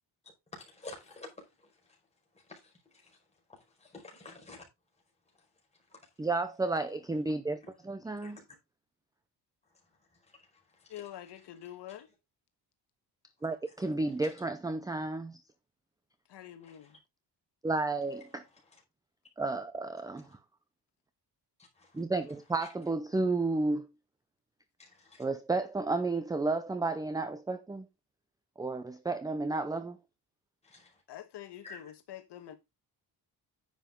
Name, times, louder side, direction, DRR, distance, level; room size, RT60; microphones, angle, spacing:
voice 1, 0.2-2.0 2.3-3.2 3.5-4.6 5.9-6.0 8.0-8.6 9.7-9.8 10.1-10.9 16.7-16.8 18.5-18.8 21.7-22.0 22.6-22.7 24.8-25.3 30.6-31.0 31.6-31.8, left 2 dB, 15° left, 4.7 m, -51 dB
voice 2, 6.2-8.4 13.4-15.4 17.6-18.4 19.4-20.4 21.9-23.9 25.2-27.9 28.6-30.0, right 3 dB, 10° right, 0.5 m, -32 dB
voice 3, 10.9-12.1 16.3-17.0 31.1-32.6, left 11 dB, 75° left, 1.4 m, -46 dB
10.0 x 7.4 x 3.7 m
wide cardioid pair, 170°, 42 cm